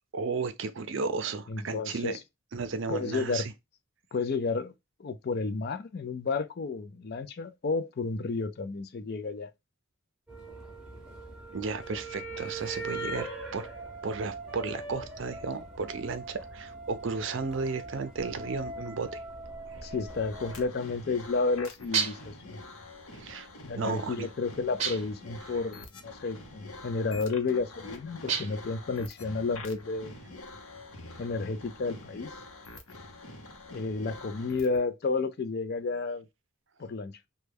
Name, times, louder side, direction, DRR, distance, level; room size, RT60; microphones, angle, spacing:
voice 1, 0.1-2.2 2.5-3.5 11.5-13.7 14.0-19.2 23.1-23.5 23.7-24.3 25.5-25.6, right 4 dB, 60° right, 0.5 m, -34 dB
voice 2, 1.5-2.2 2.9-3.5 4.1-4.7 5.0-9.5 19.8-22.6 23.6-30.1 31.2-32.3 33.7-36.2 36.8-37.1, left 4 dB, 45° left, 0.4 m, -31 dB
sound 1, 10.3-20.7, right 2 dB, 5° right, 0.8 m, -41 dB
sound 2, 20.1-34.8, left 2 dB, 85° left, 0.8 m, -46 dB
sound 3, 21.9-22.4 24.8-25.3 28.3-28.7, right 6 dB, 35° right, 0.9 m, -31 dB
3.2 x 2.2 x 3.3 m
head